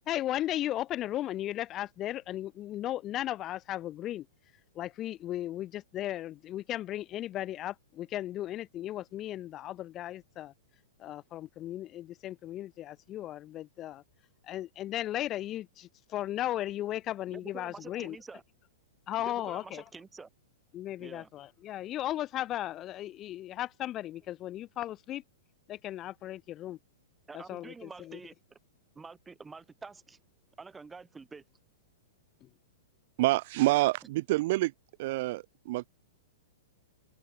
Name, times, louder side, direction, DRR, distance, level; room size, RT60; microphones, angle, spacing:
voice 1, 0.1-4.3 4.8-10.5 11.0-14.0 14.5-18.2 19.1-19.8 20.7-25.2 25.7-26.8 27.5-27.7 28.1-28.2, left 13 dB, 30° left, 2.1 m, -36 dB
voice 2, 17.3-18.4 19.2-20.3 21.0-21.3 27.3-28.6 28.9-30.2 30.6-31.4, right 4 dB, 10° right, 4.0 m, -47 dB
voice 3, 33.2-34.7 35.0-35.9, right 19 dB, 55° right, 0.5 m, -27 dB
hypercardioid pair, 130°, 0 cm